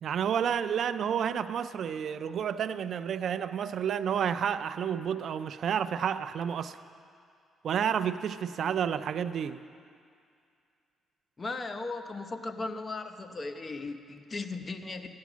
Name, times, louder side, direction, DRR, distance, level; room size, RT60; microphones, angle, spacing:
voice 1, 0.0-6.8 7.6-9.6, right 8 dB, 60° right, 13 dB, 0.4 m, -30 dB
voice 2, 11.4-15.2, left 3 dB, 30° left, 7 dB, 0.8 m, -37 dB
14.0 x 9.5 x 6.1 m, 2.4 s
cardioid pair, 90°, 0 cm